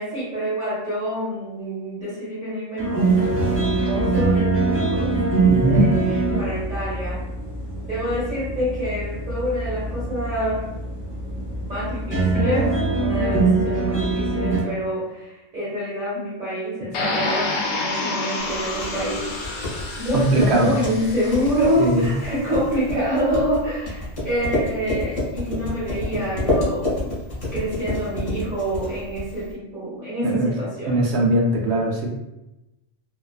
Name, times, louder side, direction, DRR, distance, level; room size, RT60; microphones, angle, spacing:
voice 1, 0.0-5.2 5.6-7.2 7.8-10.7 11.3-19.4 20.0-27.1 27.5-31.0, equal, 40° right, -10 dB, 1.1 m, -27 dB
sound 1, 2.8-14.6, right 3 dB, 10° left, 1.0 m, -23 dB
voice 2, 5.5-5.8 20.1-20.8 21.8-22.1 30.2-30.5 30.9-32.1, right 2 dB, 65° right, -1 dB, 0.7 m, -20 dB
sound 2, 16.9-21.9, left 3 dB, 75° left, 0.9 m, -29 dB
sound 3, 18.5-29.5, left 2 dB, 35° left, 0.7 m, -28 dB
2.4 x 2.3 x 2.3 m, 0.95 s
omnidirectional pair, 1.3 m